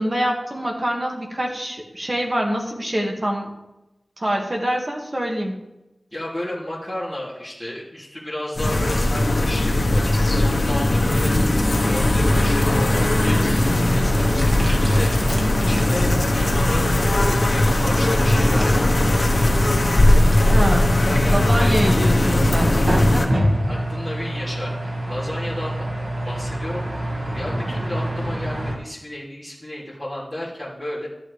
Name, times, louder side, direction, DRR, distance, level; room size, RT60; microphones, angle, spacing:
voice 1, 0.0-3.5 4.2-5.7 20.5-20.9 21.3-22.8, equal, 40° right, 0 dB, 1.8 m, -25 dB
voice 2, 6.1-15.1 15.6-18.9 21.0-21.9 23.1-23.3 23.7-26.9 27.3-31.1, left 1 dB, ahead, -7 dB, 2.8 m, -33 dB
sound 1, 8.6-23.3, left 1 dB, 60° left, 1.2 m, -18 dB
sound 2, 11.9-28.8, right 1 dB, 60° right, 1.7 m, -27 dB
13.5 x 8.9 x 3.3 m, 0.95 s
wide cardioid pair, 65°, 0 cm